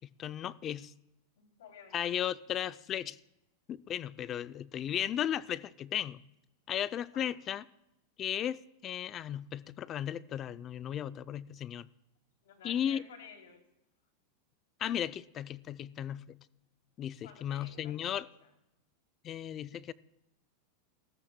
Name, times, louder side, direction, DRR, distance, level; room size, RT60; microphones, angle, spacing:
voice 1, 0.2-0.9 1.9-3.2 3.7-6.2 6.7-7.6 8.2-11.9 12.6-13.0 14.8-16.4 17.0-18.3 19.2-19.9, left 10 dB, 30° left, 0.4 m, -35 dB
voice 2, 1.4-2.2 7.1-7.3 12.4-13.6 17.2-18.5, left 6 dB, 90° left, 2.9 m, -54 dB
19.5 x 13.5 x 2.2 m
supercardioid pair, 135°, 0 cm